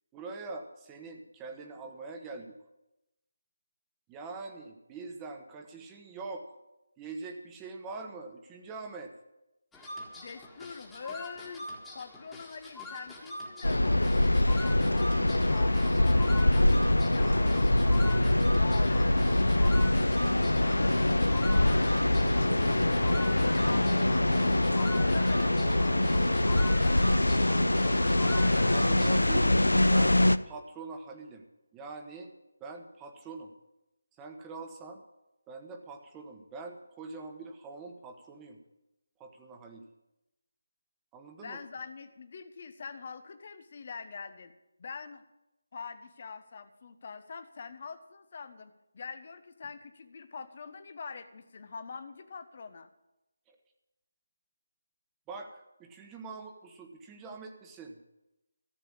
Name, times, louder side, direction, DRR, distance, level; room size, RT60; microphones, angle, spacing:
voice 1, 0.1-2.5 4.1-6.6 7.0-9.1 28.7-30.2 30.4-31.4 31.7-32.3 32.6-33.5 34.2-35.0 35.5-38.6 39.2-39.8 41.1-41.6 53.5-53.6 55.3-58.0, right 3 dB, 15° right, 4 dB, 1.3 m, -43 dB
sound 1, 9.7-29.4, left 2 dB, 5° left, 1.8 m, -42 dB
voice 2, 10.1-19.2 20.1-24.3 24.7-25.9 41.4-44.5 44.8-45.2 45.7-52.9, left 5 dB, 45° left, 9 dB, 1.1 m, -44 dB
sound 2, 13.6-30.4, left 1 dB, 85° left, 0.6 m, -24 dB
14.0 x 6.8 x 9.7 m, 0.93 s
figure-of-eight pair, 155°, 0 cm